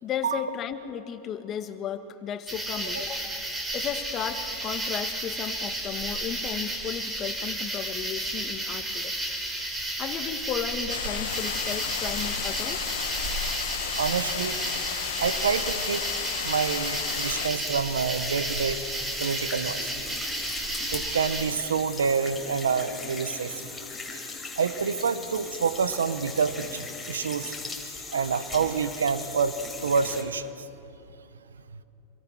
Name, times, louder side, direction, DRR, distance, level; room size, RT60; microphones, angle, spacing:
voice 1, 0.0-3.4 3.7-9.1 10.0-12.8, left 9 dB, 35° left, 9 dB, 1.6 m, -34 dB
sound 1, 2.5-21.4, right 1 dB, 20° right, 4.9 m, -32 dB
sound 2, 10.9-17.5, left 11 dB, 75° left, 0.7 m, -34 dB
sound 3, 11.3-30.2, left 3 dB, 10° left, 4.9 m, -40 dB
voice 2, 14.0-14.6 15.2-16.0 16.4-18.8 19.2-19.9 20.9-23.6 24.6-27.6 28.1-30.7, right 6 dB, 85° right, 13 dB, 1.0 m, -27 dB
26.5 x 23.5 x 6.2 m, 2.8 s
hypercardioid pair, 100°, 0 cm